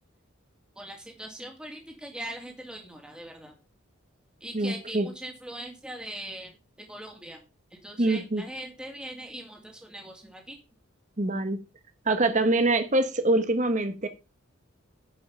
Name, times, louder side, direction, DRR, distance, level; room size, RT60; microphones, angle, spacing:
voice 1, 0.8-3.5 4.4-7.4 7.7-10.6, right 1 dB, 5° right, 2.2 m, -41 dB
voice 2, 4.5-5.1 8.0-8.4 11.2-11.6 12.0-14.1, right 2 dB, 35° right, 1.3 m, -24 dB
10.5 x 5.6 x 5.5 m
head